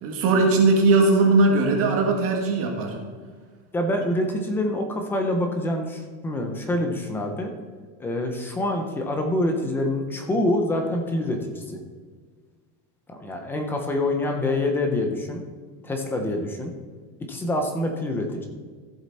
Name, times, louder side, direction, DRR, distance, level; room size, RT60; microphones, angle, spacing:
voice 1, 0.0-3.0, right 3 dB, 35° right, 1 dB, 1.7 m, -19 dB
voice 2, 3.7-7.5 8.0-11.8 13.1-15.4 15.8-16.7 17.3-18.5, left 1 dB, 5° left, 4 dB, 0.3 m, -26 dB
14.0 x 7.4 x 4.1 m, 1.6 s
cardioid pair, 175°, 41 cm